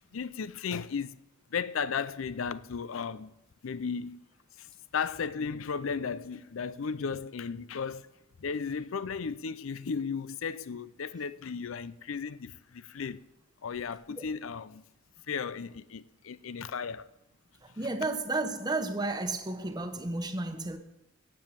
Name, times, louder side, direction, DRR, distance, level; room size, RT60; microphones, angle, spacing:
voice 1, 0.1-1.2 1.5-3.3 3.6-4.2 4.6-4.7 4.9-8.1 8.4-13.2 13.6-14.8 15.3-17.1, left 6 dB, 75° left, 0.5 m, -35 dB
voice 2, 17.6-20.8, right 2 dB, 20° right, 1.0 m, -32 dB
16.5 x 7.6 x 6.7 m
head